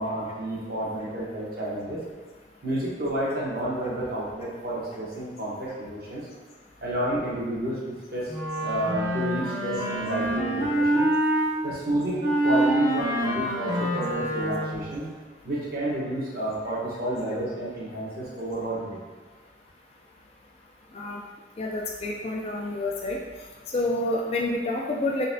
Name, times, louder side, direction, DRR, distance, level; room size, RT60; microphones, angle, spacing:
voice 1, 0.0-2.0 2.6-6.3 6.8-8.3 8.6-11.1 11.6-15.1 15.4-19.0, right 1 dB, 55° right, -6 dB, 1.0 m, -30 dB
Wind instrument woodwind instrument, 8.3-11.5 12.2-14.9, right 1 dB, 25° right, 0.7 m, -26 dB
voice 2, 21.6-23.2 23.7-25.3, left 2 dB, 35° left, -2 dB, 0.4 m, -28 dB
3.9 x 3.4 x 2.7 m, 1.4 s
head